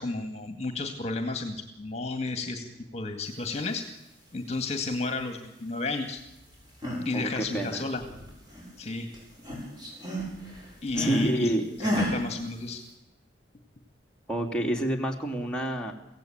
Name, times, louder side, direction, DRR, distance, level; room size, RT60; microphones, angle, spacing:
voice 1, 0.0-3.8 4.3-6.2 7.1-8.0 8.8-9.1 10.8-11.5 11.8-12.8, left 3 dB, 35° left, 5 dB, 2.1 m, -32 dB
sound 1, 6.5-7.1 7.4-8.9 9.1-11.3 11.8-12.2, equal, 20° right, 7.3 m, -32 dB
voice 2, 7.1-7.8 11.0-11.6 14.3-15.9, right 1 dB, 5° left, -1 dB, 3.0 m, -28 dB
24.5 x 17.0 x 8.9 m, 0.93 s
head